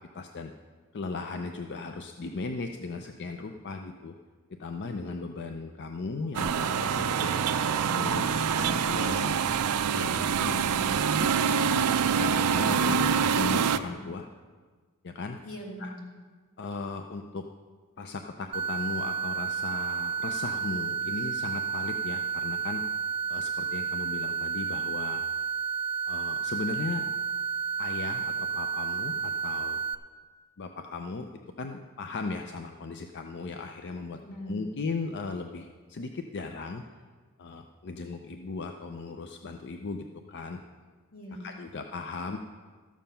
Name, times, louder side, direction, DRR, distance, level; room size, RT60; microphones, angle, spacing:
voice 1, 0.1-0.5 0.9-4.1 4.5-7.4 7.9-9.4 10.0-10.6 12.1-14.3 15.0-15.4 15.8-15.9 16.6-17.4 18.0-22.8 23.3-25.2 26.1-27.0 27.8-29.8 30.6-31.3 31.6-34.2 34.5-36.8 37.4-40.6 41.4-42.4, left 3 dB, 50° left, 5 dB, 0.5 m, -37 dB
sound 1, 6.3-13.8, right 6 dB, 90° right, 0.5 m, -25 dB
voice 2, 10.5-11.0 13.7-14.1 15.4-16.0 34.2-34.7 41.1-41.6, equal, 85° left, -2 dB, 2.6 m, -41 dB
sound 2, 18.5-29.9, right 6 dB, 25° right, 0.4 m, -31 dB
13.0 x 7.2 x 5.6 m, 1.5 s
head